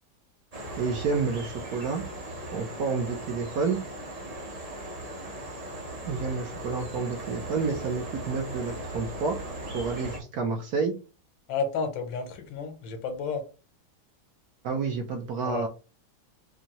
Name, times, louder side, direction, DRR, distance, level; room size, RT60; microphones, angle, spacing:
sound 1, 0.5-10.2, right 1 dB, 45° right, 0.4 m, -38 dB
voice 1, 0.8-2.0 2.5-3.8 6.1-9.4 9.7-11.0 14.6-15.7, right 5 dB, 70° right, 0.9 m, -29 dB
voice 2, 11.5-13.4 15.4-15.7, left 5 dB, 75° left, 1.5 m, -31 dB
4.4 x 2.7 x 2.9 m
omnidirectional pair, 2.1 m